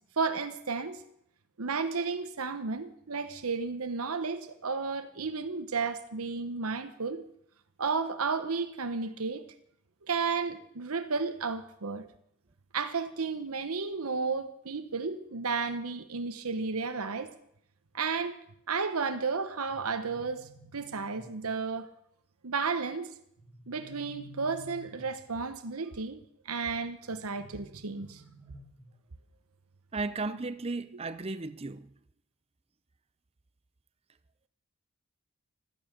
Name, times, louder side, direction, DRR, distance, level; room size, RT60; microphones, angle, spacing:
voice 1, 0.2-1.0 1.6-7.2 7.8-9.4 10.0-12.0 12.7-17.3 17.9-18.4 18.7-21.9 22.4-23.1 23.7-26.2 26.4-28.2, right 4 dB, 90° right, 1.0 m, -33 dB
sound 1, 19.7-21.7 23.4-25.4 27.1-29.1, left 1 dB, 40° left, 4.6 m, -53 dB
voice 2, 29.9-31.9, right 3 dB, 25° right, 0.5 m, -35 dB
16.5 x 12.5 x 6.6 m
head